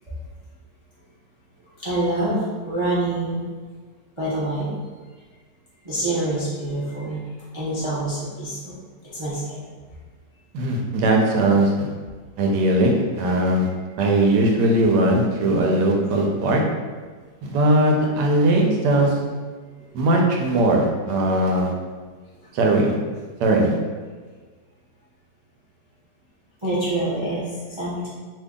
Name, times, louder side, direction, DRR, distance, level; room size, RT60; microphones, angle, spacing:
voice 1, 1.8-3.4 4.2-4.7 5.8-7.2 7.5-8.8 9.0-9.6 26.6-28.1, right 1 dB, 45° right, -9 dB, 0.3 m, -26 dB
voice 2, 10.5-11.9 12.4-13.7 14.0-16.6 17.4-19.1 19.9-21.7 22.5-23.0 23.4-23.8, right 1 dB, 90° right, 0 dB, 1.3 m, -19 dB
2.7 x 2.7 x 3.6 m, 1.5 s
omnidirectional pair, 1.8 m